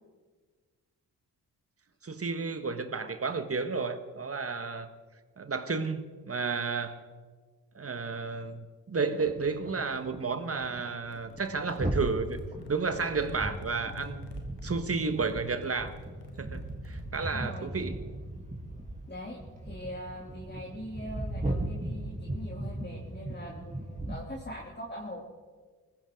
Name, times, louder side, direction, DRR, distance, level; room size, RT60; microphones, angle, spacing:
voice 1, 2.0-4.9 5.4-7.0 7.7-12.4 12.7-15.9 16.4-18.0, right 4 dB, 35° right, 9 dB, 1.5 m, -32 dB
sound 1, 9.2-10.3 10.6-10.8 11.1-24.3, right 1 dB, 20° right, 3.1 m, -37 dB
sound 2, 11.1-17.5, left 3 dB, 85° left, 1.7 m, -48 dB
voice 2, 17.2-17.7 19.1-25.2, left 1 dB, 25° left, -3 dB, 3.0 m, -42 dB
19.5 x 15.0 x 3.8 m, 1.5 s
supercardioid pair, 45°, 41 cm